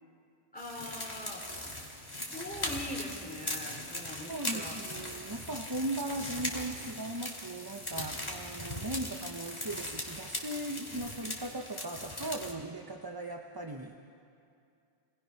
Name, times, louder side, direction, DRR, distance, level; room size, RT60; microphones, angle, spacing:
voice 1, 0.5-1.4 2.3-4.8, left 1 dB, 10° left, -2 dB, 3.3 m, -42 dB
sound 1, 0.6-12.5, left 1 dB, 25° left, 2.6 m, -39 dB
voice 2, 4.3-14.0, right 2 dB, 25° right, 2 dB, 0.8 m, -38 dB
28.5 x 20.0 x 5.8 m, 2.5 s
omnidirectional pair, 1.1 m